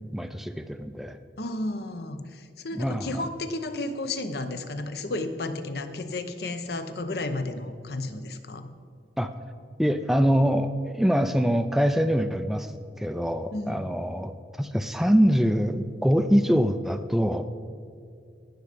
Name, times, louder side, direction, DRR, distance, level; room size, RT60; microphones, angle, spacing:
voice 1, 0.1-1.2 2.8-3.3 9.2-9.3 9.8-12.7 13.0-17.5, equal, ahead, 8 dB, 0.3 m, -24 dB
voice 2, 1.4-8.7 13.5-13.9, left 2 dB, 60° left, 9 dB, 0.8 m, -33 dB
18.0 x 6.6 x 5.1 m, 2.4 s
head